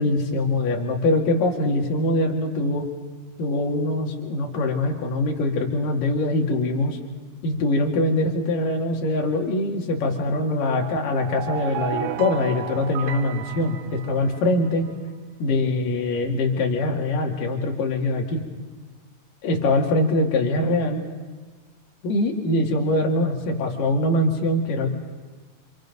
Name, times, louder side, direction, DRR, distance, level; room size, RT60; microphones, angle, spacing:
voice 1, 0.0-2.9 3.4-7.0 7.4-14.9 15.4-18.5 19.4-21.0 22.0-24.9, left 2 dB, 75° left, 1 dB, 3.7 m, -23 dB
sound 1, 10.7-14.7, right 12 dB, 70° right, 2.1 m, -33 dB
28.0 x 26.5 x 5.3 m, 1.4 s
omnidirectional pair, 3.9 m